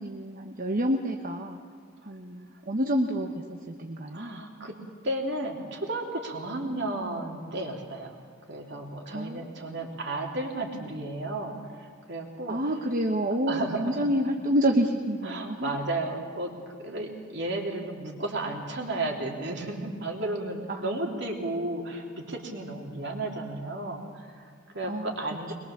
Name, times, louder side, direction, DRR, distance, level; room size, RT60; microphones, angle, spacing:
voice 1, 0.0-1.6 2.0-4.4 9.0-9.5 12.5-15.7 20.7-20.9 24.9-25.1, equal, 45° right, 2 dB, 1.2 m, -28 dB
voice 2, 4.1-4.8 5.0-8.1 8.5-12.6 13.5-14.1 15.2-25.5, right 2 dB, 60° right, 1 dB, 3.4 m, -33 dB
22.5 x 22.0 x 7.3 m, 2.1 s
head